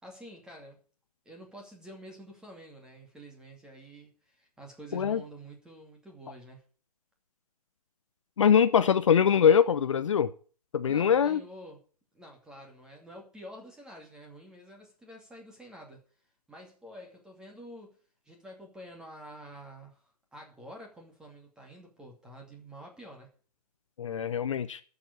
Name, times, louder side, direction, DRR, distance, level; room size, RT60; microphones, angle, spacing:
voice 1, 0.0-0.8 1.2-6.6 10.9-11.8 12.1-16.0 16.5-18.0 18.2-23.3, right 1 dB, 5° right, 2.5 m, -48 dB
voice 2, 8.4-10.3 10.7-11.4 24.0-24.8, left 7 dB, 50° left, 0.8 m, -23 dB
12.0 x 7.1 x 8.4 m
hypercardioid pair, 150°, 20 cm